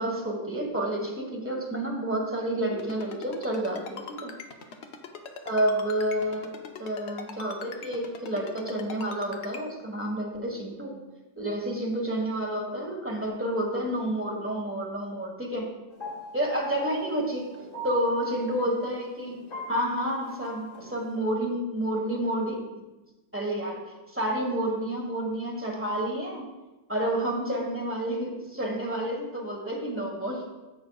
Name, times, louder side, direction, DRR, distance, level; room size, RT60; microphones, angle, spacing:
voice 1, 0.0-4.3 5.4-6.5 6.8-11.0 11.4-15.7 16.3-17.4 17.8-19.3 19.7-22.8 23.3-23.8 24.1-26.4 26.9-30.4, right 1 dB, 10° right, 0 dB, 1.4 m, -29 dB
Ringtone, 2.8-9.6, left 5 dB, 60° left, 1.0 m, -40 dB
sound 1, 15.9-21.1, right 3 dB, 85° left, 2.2 m, -41 dB
10.5 x 7.8 x 2.4 m, 1.1 s
omnidirectional pair, 1.3 m